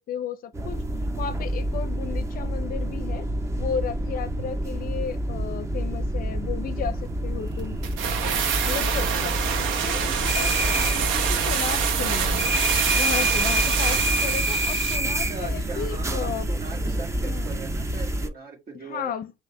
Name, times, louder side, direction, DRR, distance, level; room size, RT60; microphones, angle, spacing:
voice 1, 0.1-0.8 1.2-3.3 3.6-7.8 8.7-9.4 9.8-12.5 12.9-16.5 17.2-17.5 18.7-19.3, left 8 dB, 45° left, 0.5 m, -34 dB
sound 1, 0.5-18.3, right 1 dB, 15° right, 0.4 m, -27 dB
sound 2, 7.8-15.1 15.4-15.5, right 7 dB, 85° right, 0.8 m, -26 dB
voice 2, 15.0-19.1, right 4 dB, 50° right, 1.8 m, -39 dB
5.6 x 2.5 x 3.2 m
cardioid pair, 150°, 20 cm